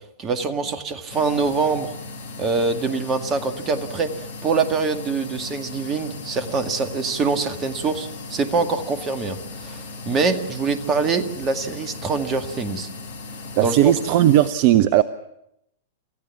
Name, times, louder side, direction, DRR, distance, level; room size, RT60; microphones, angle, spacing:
voice 1, 0.2-1.9 2.4-4.1 4.4-12.9 13.6-13.9, right 4 dB, 25° right, 8 dB, 2.0 m, -24 dB
sound 1, 1.1-14.5, left 3 dB, 65° left, 3.9 m, -37 dB
voice 2, 13.6-15.0, right 12 dB, 45° right, 15 dB, 0.7 m, -16 dB
28.0 x 15.0 x 7.2 m, 0.80 s
figure-of-eight pair, 100°, 0 cm